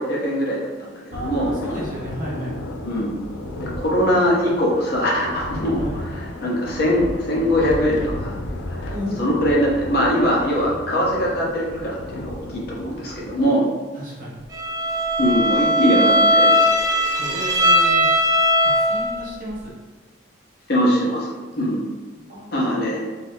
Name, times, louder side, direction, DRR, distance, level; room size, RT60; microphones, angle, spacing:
voice 1, 0.0-1.5 2.8-3.1 3.5-8.4 8.7-8.9 9.2-13.6 15.2-16.6 20.7-21.8 22.5-23.0, equal, 55° left, -4 dB, 0.7 m, -22 dB
sound 1, 1.1-13.4, left 1 dB, 75° left, 0.4 m, -33 dB
voice 2, 1.1-2.6 5.8-6.0 8.9-9.2 13.9-14.4 17.2-18.1 18.6-19.7 22.3-23.0, equal, 45° right, -7 dB, 1.1 m, -33 dB
Bowed string instrument, 14.5-19.2, equal, 20° right, 0.3 m, -18 dB
2.8 x 2.4 x 3.4 m, 1.4 s
head